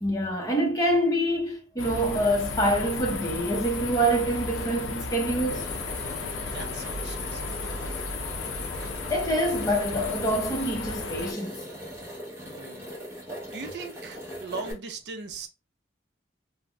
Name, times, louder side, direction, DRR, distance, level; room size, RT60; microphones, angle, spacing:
voice 1, 0.0-5.7 9.1-11.6, right 1 dB, 20° left, 0.6 m, -26 dB
sound 1, 1.8-11.3, left 4 dB, 80° left, 0.5 m, -34 dB
sound 2, 5.5-14.7, equal, 15° right, 0.8 m, -40 dB
voice 2, 6.4-7.7 12.4-12.9 13.5-15.5, right 4 dB, 55° right, 0.5 m, -40 dB
4.0 x 2.0 x 2.2 m
head